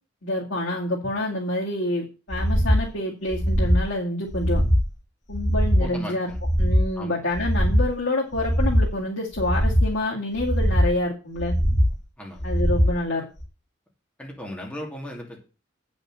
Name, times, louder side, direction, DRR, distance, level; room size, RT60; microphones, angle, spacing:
voice 1, 0.2-4.6 5.3-6.3 6.6-11.5 12.4-13.3, left 1 dB, 80° left, -4 dB, 2.5 m, -27 dB
sound 1, 2.3-2.9 3.3-3.9 4.3-4.9 5.3-5.9 6.3-6.9 7.3-7.9 8.3-8.9 9.3-9.9 10.3-10.9 11.4-11.9 12.4-13.0 13.4-13.5, equal, 40° left, 2.0 m, -21 dB
voice 2, 5.8-6.4 6.9-7.2 12.2-12.5 14.2-15.4, equal, 5° left, -1 dB, 2.6 m, -36 dB
9.0 x 6.3 x 7.6 m, 0.34 s
head